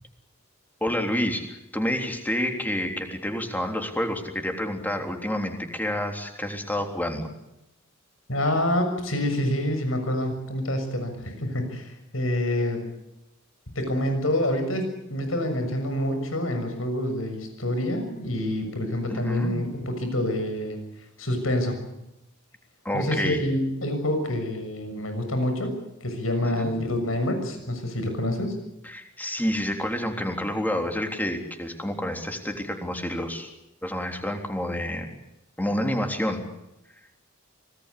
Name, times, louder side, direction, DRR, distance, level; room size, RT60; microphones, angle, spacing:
voice 1, 0.8-7.3 19.1-19.5 22.9-23.4 26.4-26.7 28.8-33.5 33.8-35.2 35.6-36.4, left 1 dB, 10° left, 4 dB, 3.6 m, -29 dB
voice 2, 8.3-12.8 13.7-20.8 21.2-21.8 22.9-25.7 26.0-28.6, left 1 dB, 90° left, 7 dB, 6.6 m, -27 dB
25.5 x 19.0 x 8.5 m, 0.89 s
head